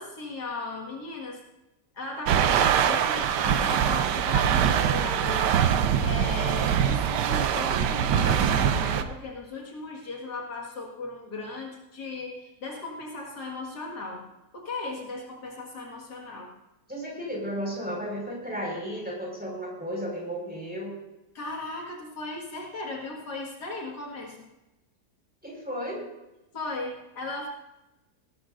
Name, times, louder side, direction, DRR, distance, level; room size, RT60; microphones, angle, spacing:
voice 1, 0.0-1.4 1.9-5.5 6.0-14.2 14.5-16.5 21.3-24.5 26.5-27.5, left 3 dB, 70° left, -1 dB, 2.5 m, -37 dB
sound 1, 2.3-9.0, right 8 dB, 90° right, 1.4 m, -23 dB
voice 2, 16.9-20.9 25.4-26.0, equal, 5° right, -3 dB, 5.1 m, -33 dB
18.5 x 13.0 x 2.6 m, 0.97 s
omnidirectional pair, 1.8 m